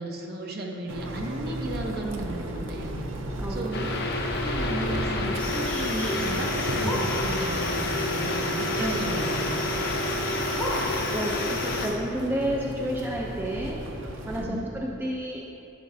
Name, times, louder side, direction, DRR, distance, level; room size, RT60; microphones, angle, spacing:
voice 1, 0.0-3.1 3.5-3.9 4.4-9.6 14.4-14.7, right 1 dB, 50° right, 1 dB, 0.8 m, -34 dB
sound 1, 0.9-14.5, right 1 dB, 85° right, 0.7 m, -35 dB
voice 2, 3.3-3.7 11.1-13.8 14.2-15.4, right 1 dB, 10° right, -2 dB, 0.4 m, -30 dB
sound 2, 3.7-11.9, left 2 dB, 55° left, 0.8 m, -29 dB
sound 3, 5.4-11.9, left 1 dB, 10° left, 1.0 m, -36 dB
10.5 x 7.3 x 2.7 m, 2.8 s
head